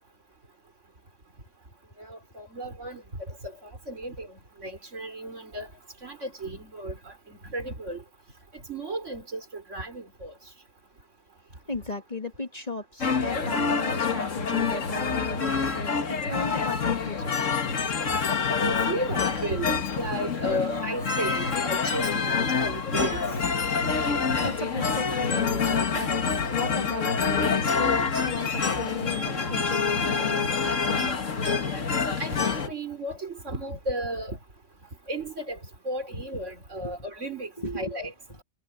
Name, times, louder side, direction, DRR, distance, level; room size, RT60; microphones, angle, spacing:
voice 1, 2.0-3.0 3.4-5.7 6.0-7.1 7.5-8.0 8.5-10.3 18.5-23.2 26.4-26.5 32.2-34.4 35.1-35.6 35.8-38.1, right 1 dB, 65° right, 4.3 m, -34 dB
voice 2, 11.7-17.6 24.4-26.1 26.5-31.1 36.8-37.0 37.6-38.0, left 3 dB, 30° left, 1.9 m, -35 dB
sound 1, 13.0-32.7, left 5 dB, 70° left, 2.1 m, -27 dB
omnidirectional pair, 1.3 m